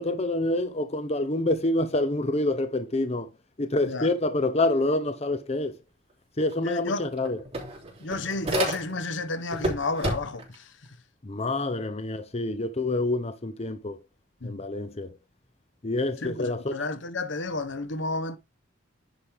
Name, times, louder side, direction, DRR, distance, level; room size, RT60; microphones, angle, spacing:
voice 1, 0.0-3.3 3.6-5.7 6.4-7.4 11.2-14.0 14.4-15.1 15.8-16.8, left 2 dB, 35° left, 0.8 m, -27 dB
sound 1, 6.5-6.6 6.9-9.2 9.5-10.5, right 1 dB, 30° right, 3.4 m, -31 dB
voice 2, 6.6-7.0 8.0-11.0 14.4-14.6 16.2-18.4, left 3 dB, 70° left, 1.0 m, -31 dB
10.0 x 5.3 x 3.5 m
head